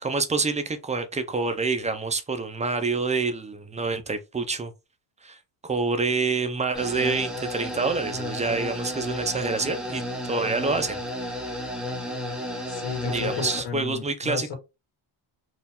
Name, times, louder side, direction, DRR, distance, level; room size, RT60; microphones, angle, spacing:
voice 1, 0.0-4.7 5.2-5.4 5.6-11.0 13.1-14.5, right 4 dB, 15° right, 0.3 m, -27 dB
sound 1, 6.7-13.6, left 1 dB, ahead, 0.9 m, -33 dB
voice 2, 12.7-14.6, left 6 dB, 70° left, 1.8 m, -33 dB
4.5 x 2.3 x 3.5 m
cardioid pair, 155°, 46 cm